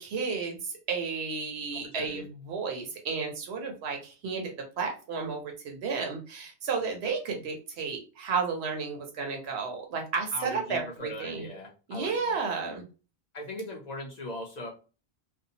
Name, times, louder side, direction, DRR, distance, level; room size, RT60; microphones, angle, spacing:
voice 1, 0.0-4.5 4.8-11.5 11.9-12.8, right 5 dB, 75° right, 2 dB, 0.9 m, -32 dB
voice 2, 1.7-2.2 10.3-12.4 13.3-14.7, left 1 dB, 50° left, 1 dB, 0.5 m, -39 dB
2.6 x 2.1 x 2.7 m, 0.34 s
omnidirectional pair, 1.1 m